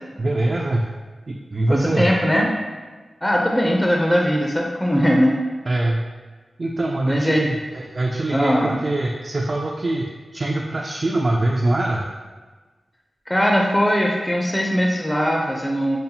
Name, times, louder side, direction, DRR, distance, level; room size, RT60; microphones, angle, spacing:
voice 1, 0.2-0.9 1.3-2.1 5.7-6.0 6.6-12.1, right 2 dB, 45° right, -2 dB, 0.3 m, -23 dB
voice 2, 1.7-2.5 3.2-5.4 7.1-7.4 8.3-8.8 13.3-16.0, equal, 15° left, -1 dB, 0.5 m, -20 dB
5.3 x 2.1 x 2.8 m, 1.3 s
cardioid pair, 60°, 0 cm